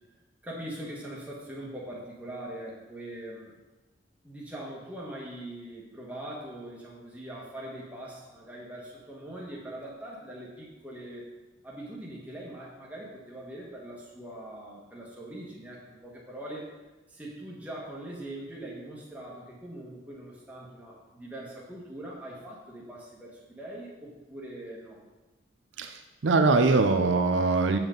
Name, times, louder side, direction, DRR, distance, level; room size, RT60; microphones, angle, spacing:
voice 1, 0.4-3.5 4.2-11.3 11.6-16.7 17.1-25.0, right 1 dB, 10° right, -4 dB, 1.4 m, -42 dB
voice 2, 25.8-27.8, right 3 dB, 75° right, 6 dB, 0.5 m, -23 dB
7.2 x 7.0 x 3.8 m, 1.1 s
head